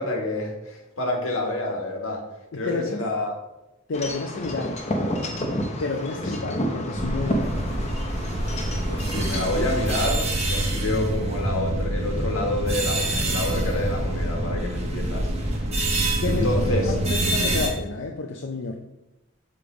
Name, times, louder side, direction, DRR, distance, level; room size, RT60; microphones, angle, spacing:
voice 1, 0.0-2.2 2.5-3.3 6.1-6.2 8.9-15.3 16.3-16.9 17.5-17.6, left 1 dB, 75° left, 1 dB, 1.5 m, -28 dB
voice 2, 2.5-3.0 3.9-4.8 5.8-7.7 16.2-18.7, left 4 dB, 60° left, 2 dB, 0.5 m, -30 dB
Wind chime / Wind, 3.9-10.2, equal, 30° left, 0.9 m, -30 dB
sound 1, 6.9-17.7, right 1 dB, 30° right, 1.1 m, -26 dB
6.9 x 3.3 x 5.0 m, 0.97 s
head